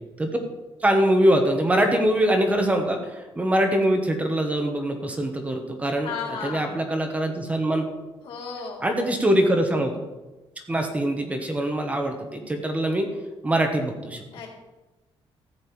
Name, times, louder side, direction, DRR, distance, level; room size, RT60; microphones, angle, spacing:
voice 1, 0.8-6.1 6.4-7.9 8.8-10.0 10.7-13.1 13.4-14.2, right 1 dB, 15° right, 4 dB, 1.4 m, -23 dB
voice 2, 6.0-6.8 8.2-8.9 14.3-14.5, left 5 dB, 75° left, -1 dB, 3.6 m, -34 dB
14.0 x 5.3 x 8.5 m, 1.1 s
cardioid pair, 170°, 9 cm